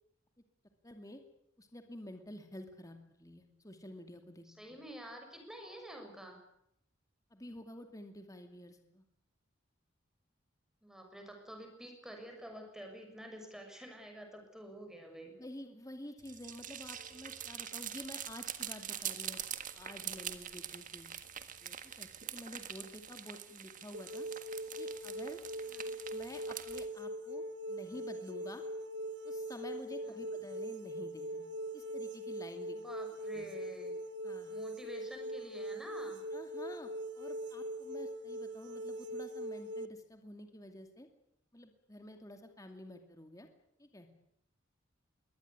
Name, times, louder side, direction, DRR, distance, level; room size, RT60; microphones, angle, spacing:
voice 1, 0.8-1.2 1.6-4.4 7.3-9.0 15.4-19.4 19.7-21.1 21.6-24.3 24.8-25.4 26.1-28.6 29.2-31.5 31.7-32.8 33.3-33.5 34.2-34.5 36.3-36.9 37.2-41.1 41.5-43.5 43.8-44.1, left 1 dB, 20° left, 5 dB, 2.5 m, -50 dB
voice 2, 4.4-6.4 10.8-15.4 25.6-25.9 30.0-30.3 32.7-33.9 34.5-36.2, right 1 dB, 5° right, 3 dB, 6.4 m, -49 dB
sound 1, 16.2-26.9, right 9 dB, 45° right, 1.7 m, -44 dB
sound 2, 23.9-39.9, right 1 dB, 65° right, 1.3 m, -41 dB
22.5 x 18.5 x 9.7 m, 0.75 s
head